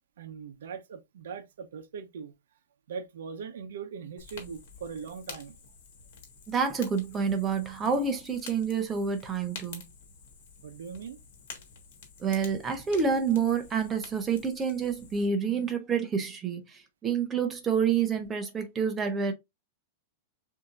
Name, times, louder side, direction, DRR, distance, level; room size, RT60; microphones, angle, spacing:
voice 1, 0.2-2.3 2.9-5.6 10.6-11.2, right 6 dB, 85° right, 0.8 m, -40 dB
Fire, 4.2-15.3, left 5 dB, 55° left, 1.7 m, -49 dB
voice 2, 6.5-9.8 12.2-19.3, right 6 dB, 10° right, 0.7 m, -28 dB
6.7 x 2.8 x 2.4 m
supercardioid pair, 180°, 0 cm